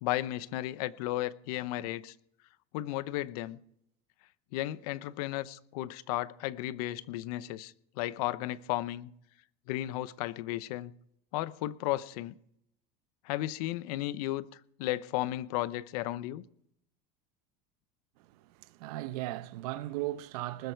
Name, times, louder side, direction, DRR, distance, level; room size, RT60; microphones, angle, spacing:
voice 1, 0.0-2.1 2.7-3.6 4.5-9.1 9.7-10.9 11.3-12.3 13.2-14.4 14.8-16.4, left 15 dB, 80° left, 0.8 m, -34 dB
voice 2, 18.2-20.7, right 16 dB, 85° right, 0.8 m, -37 dB
20.0 x 8.2 x 4.6 m
supercardioid pair, 130°, 19 cm